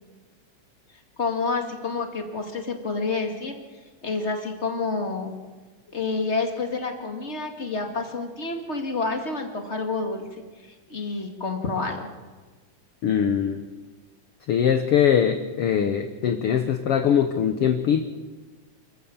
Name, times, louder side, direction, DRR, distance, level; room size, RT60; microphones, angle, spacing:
voice 1, 1.2-3.5 4.0-5.3 5.9-12.1, left 3 dB, 25° left, 4 dB, 2.0 m, -29 dB
voice 2, 13.0-13.6 14.5-18.0, left 8 dB, 65° left, 8 dB, 1.5 m, -22 dB
27.5 x 15.0 x 7.3 m, 1.3 s
omnidirectional pair, 3.8 m